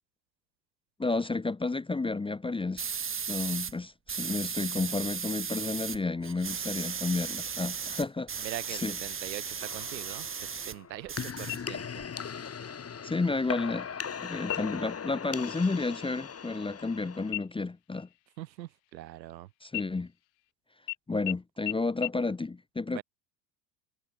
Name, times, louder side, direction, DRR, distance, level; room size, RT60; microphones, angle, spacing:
voice 1, 1.0-2.9 3.3-9.0 13.0-13.9 14.2-18.1 19.6-20.1 21.1-23.0, left 3 dB, 10° left, 1.0 m, -31 dB
sound 1, 2.8-3.7 4.1-6.0 6.2-10.8 11.1-12.1, right 6 dB, 25° right, 2.6 m, -36 dB
voice 2, 8.4-12.0 18.4-19.5 22.9-23.0, right 15 dB, 85° right, 7.7 m, -42 dB
sound 2, 9.6-17.3, left 7 dB, 30° left, 6.0 m, -39 dB
sound 3, 11.5-12.1 12.5-12.6 13.2-13.7 14.4-14.9 15.3-15.6 15.9-17.0 17.3-19.3 19.7-20.5 20.9-21.0 21.3-21.4 21.7-21.8 22.0-22.1, left 27 dB, 60° left, 2.3 m, -39 dB
hypercardioid pair, 90°, 50 cm